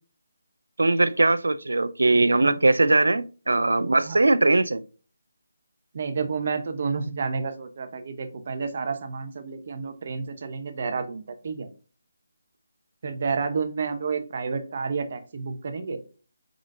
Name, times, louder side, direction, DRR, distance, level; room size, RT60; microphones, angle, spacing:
voice 1, 0.8-4.8, right 2 dB, 85° right, 0.3 m, -20 dB
voice 2, 5.9-11.7 13.0-16.0, right 5 dB, 45° right, 0.8 m, -30 dB
5.0 x 3.6 x 2.6 m
figure-of-eight pair, 160°, 0 cm